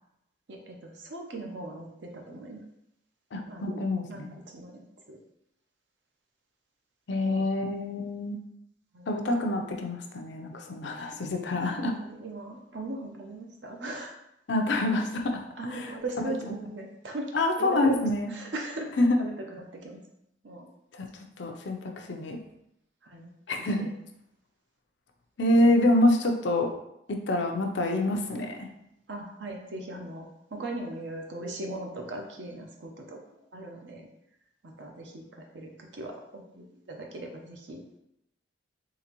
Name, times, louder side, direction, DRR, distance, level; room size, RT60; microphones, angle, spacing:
voice 1, 0.5-2.6 3.5-4.8 5.1-5.2 7.2-7.5 8.9-9.1 11.8-14.1 15.6-17.3 17.6-18.0 18.3-18.9 19.2-20.0 20.4-20.7 23.0-23.3 23.8-23.9 25.5-25.7 29.1-30.3 30.5-33.2 33.5-34.1 34.6-38.0, right 2 dB, 75° right, 2 dB, 0.7 m, -39 dB
voice 2, 3.3-4.3 7.1-8.4 9.1-11.9 14.5-15.4 15.7-16.3 17.3-18.3 19.0-19.2 21.0-21.1 21.4-22.4 23.5-23.9 25.4-26.7 27.1-28.7, left 1 dB, 75° left, 3 dB, 0.5 m, -26 dB
3.9 x 2.9 x 2.9 m, 0.81 s
head